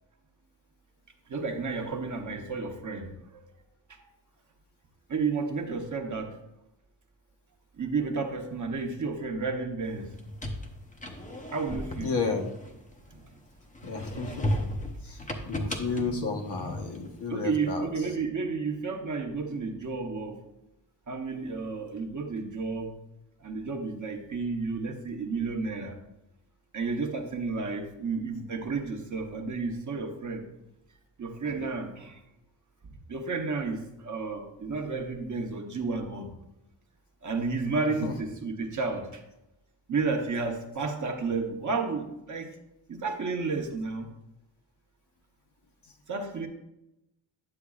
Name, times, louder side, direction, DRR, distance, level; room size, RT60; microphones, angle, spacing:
voice 1, 1.3-3.4 3.9-4.0 5.1-6.3 7.8-10.1 11.5-12.1 13.1-13.3 17.3-20.4 21.1-22.9 23.4-26.0 26.7-30.4 31.2-32.2 33.1-36.3 37.2-39.2 39.9-42.5 42.9-44.1 46.1-46.5, right 4 dB, 40° right, 3 dB, 0.9 m, -32 dB
sound 1, 10.0-13.3 13.7-17.1, equal, 15° left, 0.7 m, -35 dB
voice 2, 12.0-12.5 13.8-14.7 15.0-15.2 15.5-17.9 38.0-38.1, left 4 dB, 65° left, 2 dB, 1.1 m, -32 dB
9.7 x 7.2 x 2.4 m, 0.89 s
wide cardioid pair, 150°, 44 cm